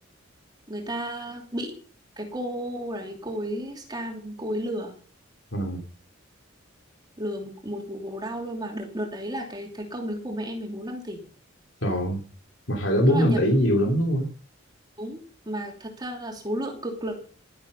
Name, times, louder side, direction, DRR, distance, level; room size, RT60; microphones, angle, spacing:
voice 1, 0.7-1.7 2.2-4.9 7.2-11.2 13.1-13.4 15.0-17.1, equal, 20° right, 2 dB, 2.9 m, -33 dB
voice 2, 11.8-12.2 12.7-14.3, equal, 65° left, 0 dB, 3.1 m, -22 dB
12.5 x 11.0 x 5.5 m, 0.40 s
head